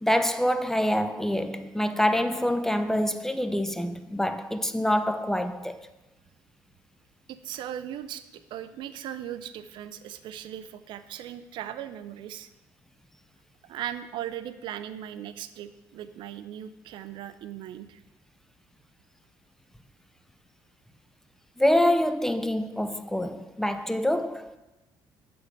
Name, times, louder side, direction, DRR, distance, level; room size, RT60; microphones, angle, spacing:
voice 1, 0.0-5.9 21.6-24.5, left 1 dB, 5° left, 0.4 m, -26 dB
voice 2, 7.3-12.5 13.7-18.0, right 11 dB, 70° right, 0.4 m, -38 dB
7.1 x 3.4 x 5.1 m
supercardioid pair, 75°, 8 cm